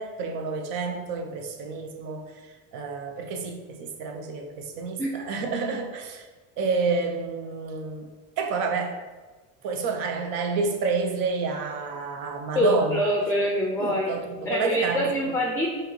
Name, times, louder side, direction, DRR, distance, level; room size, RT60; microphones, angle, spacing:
voice 1, 0.0-6.3 6.6-8.1 8.4-9.0 9.6-13.0 13.8-15.4, right 4 dB, 65° right, 4 dB, 0.7 m, -29 dB
voice 2, 12.5-14.1 14.5-15.7, equal, 5° left, 0 dB, 0.4 m, -24 dB
4.7 x 2.9 x 3.1 m, 1.3 s
supercardioid pair, 115°, 37 cm